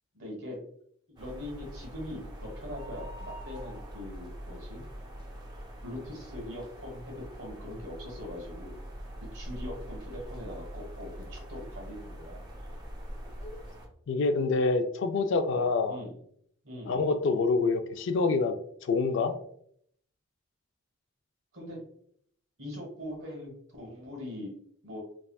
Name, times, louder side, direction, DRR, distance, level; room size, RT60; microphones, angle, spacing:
voice 1, 0.1-0.6 1.1-4.9 5.8-8.9 9.3-12.5 15.5-16.1 16.6-17.1 21.5-21.8 22.6-24.5 24.8-25.0, left 1 dB, 60° right, -2 dB, 1.4 m, -42 dB
sound 1, 1.2-13.9, equal, 20° right, 0.5 m, -43 dB
voice 2, 14.1-16.0 16.8-18.5 18.8-19.4, left 4 dB, 60° left, 8 dB, 0.3 m, -26 dB
3.4 x 2.4 x 2.2 m, 0.65 s
head